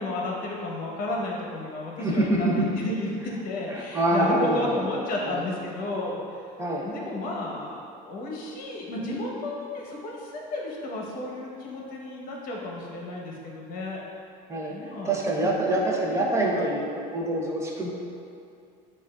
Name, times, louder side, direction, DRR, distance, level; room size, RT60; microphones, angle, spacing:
voice 1, 0.0-6.4 6.8-14.0 14.7-16.6, left 2 dB, 50° left, -2 dB, 1.0 m, -33 dB
voice 2, 2.0-2.8 3.7-5.4 6.6-6.9 14.5-14.7 15.0-16.8 17.1-17.9, right 1 dB, 15° right, -2 dB, 0.7 m, -25 dB
7.1 x 2.5 x 2.3 m, 2.5 s
supercardioid pair, 110°, 18 cm